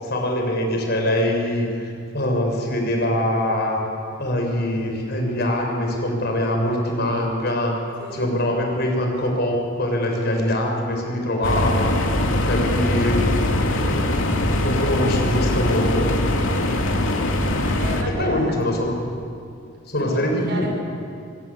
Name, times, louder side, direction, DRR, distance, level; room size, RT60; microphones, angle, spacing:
voice 1, 0.0-3.8 4.2-7.8 8.1-11.9 12.4-13.1 13.7-13.9 14.6-16.1 18.2-19.0 19.9-20.7, left 1 dB, 55° left, 2 dB, 6.4 m, -23 dB
voice 2, 8.0-8.4 12.5-13.1 16.5-17.0 17.8-18.6 19.9-20.7, right 1 dB, 55° right, 1 dB, 6.0 m, -34 dB
sound 1, 11.4-18.0, left 1 dB, 80° left, 3.0 m, -21 dB
25.5 x 25.5 x 8.4 m, 2.5 s
head